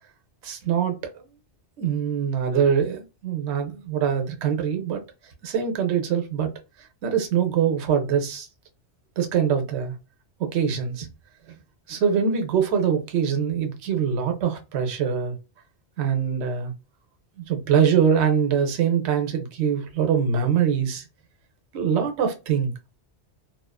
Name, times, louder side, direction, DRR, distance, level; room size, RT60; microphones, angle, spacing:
voice 1, 0.4-0.9 1.8-5.0 5.4-6.5 7.0-8.5 9.2-9.9 10.4-11.1 11.9-15.4 16.0-16.7 17.4-21.0 21.7-22.7, right 7 dB, 70° right, 1.0 m, -23 dB
2.4 x 2.4 x 2.2 m
omnidirectional pair, 1.2 m